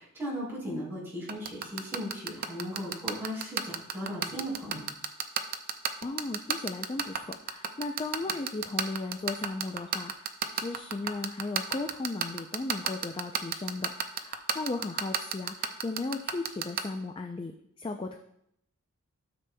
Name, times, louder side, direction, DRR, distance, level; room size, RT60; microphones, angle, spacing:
voice 1, 0.0-4.9, equal, 10° right, -7 dB, 3.5 m, -37 dB
sound 1, 1.3-16.8, right 8 dB, 45° right, 0.5 m, -29 dB
voice 2, 6.0-18.2, left 3 dB, 25° left, 5 dB, 0.3 m, -36 dB
13.0 x 6.9 x 2.2 m, 0.75 s
head